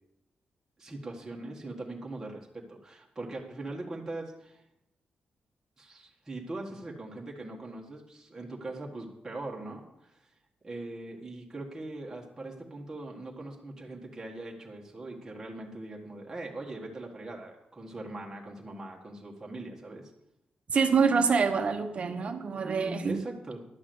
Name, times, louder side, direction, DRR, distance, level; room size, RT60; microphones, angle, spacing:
voice 1, 0.8-4.6 5.8-10.2 10.6-20.0 23.0-23.7, right 2 dB, 15° right, -2 dB, 1.5 m, -41 dB
voice 2, 20.7-23.2, right 5 dB, 40° right, 7 dB, 1.1 m, -26 dB
11.5 x 6.1 x 7.7 m, 0.84 s
wide cardioid pair, 165°, 3 cm